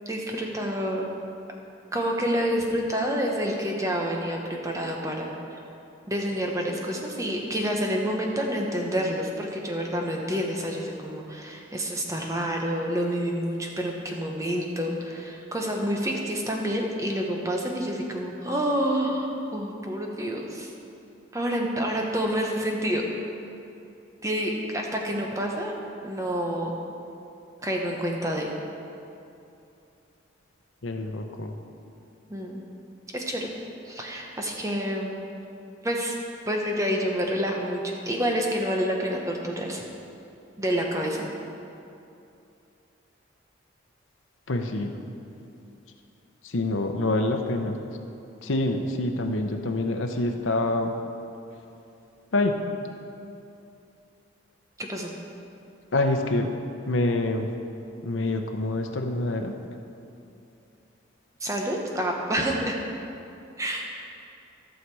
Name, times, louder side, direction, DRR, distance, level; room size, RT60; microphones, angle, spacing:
voice 1, 0.1-1.1 1.9-5.6 6.1-20.7 21.3-23.0 24.2-25.7 26.0-26.7 27.6-28.5 32.3-32.6 33.1-33.5 33.8-35.1 35.8-36.1 36.4-39.8 40.6-41.3 54.8-55.1 61.4-62.8 63.6-63.8, equal, 15° right, 0 dB, 1.0 m, -28 dB
voice 2, 30.8-31.5 44.5-44.9 46.4-47.8 48.4-50.9 52.3-52.6 55.9-56.6 56.9-57.5 58.0-59.5, left 2 dB, 80° left, 3 dB, 0.8 m, -26 dB
14.5 x 6.6 x 4.7 m, 2.7 s
head